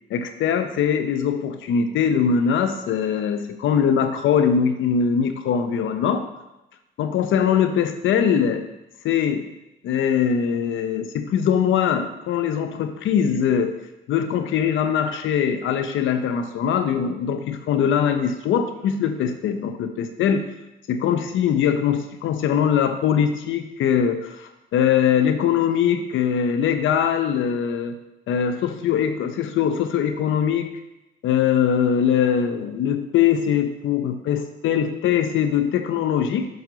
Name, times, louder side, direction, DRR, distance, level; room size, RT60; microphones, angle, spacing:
voice 1, 0.1-6.2 7.0-8.6 9.0-9.5 9.8-13.7 14.1-20.5 20.9-27.9 28.3-30.7 31.2-36.5, left 8 dB, 80° left, 8 dB, 0.8 m, -22 dB
7.9 x 6.2 x 4.0 m, 0.93 s
cardioid pair, 90°, 20 cm